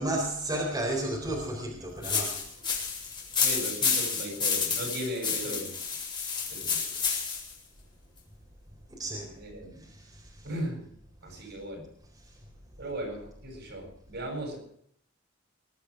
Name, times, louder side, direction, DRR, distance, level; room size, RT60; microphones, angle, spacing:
voice 1, 0.0-2.7 8.9-9.3 9.8-10.5 11.3-11.5 12.2-12.4, right 1 dB, 20° right, -1 dB, 4.2 m, -33 dB
sound 1, 2.0-7.5, left 6 dB, 25° left, 4.5 m, -30 dB
voice 2, 3.4-5.8 6.5-7.0 9.4-9.8 10.4-10.9 11.2-11.9 12.8-14.6, right 1 dB, 60° right, 2 dB, 7.6 m, -37 dB
21.0 x 12.0 x 5.0 m, 0.67 s
head